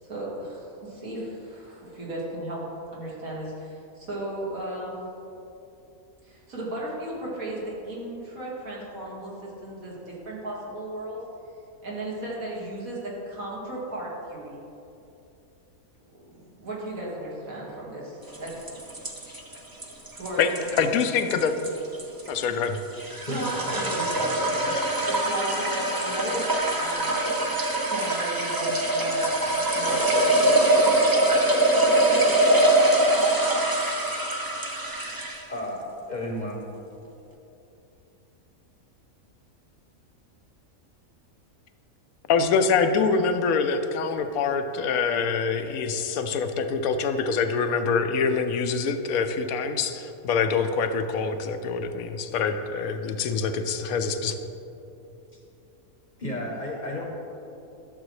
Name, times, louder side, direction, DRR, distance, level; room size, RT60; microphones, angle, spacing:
voice 1, 0.0-2.6 2.9-5.0 6.2-11.2 11.8-14.6 16.1-18.5 19.8-20.4 23.3-27.1 27.8-30.8, right 1 dB, 75° right, -6 dB, 2.3 m, -35 dB
sound 1, 18.3-35.5, right 1 dB, 25° right, 0.5 m, -23 dB
voice 2, 20.8-21.5 22.3-22.8 42.3-54.4, left 5 dB, 80° left, 8 dB, 1.0 m, -25 dB
voice 3, 35.5-36.6 55.3-55.4 56.2-57.0, left 1 dB, 35° left, 0 dB, 0.9 m, -32 dB
12.0 x 7.0 x 3.2 m, 2.8 s
omnidirectional pair, 1.5 m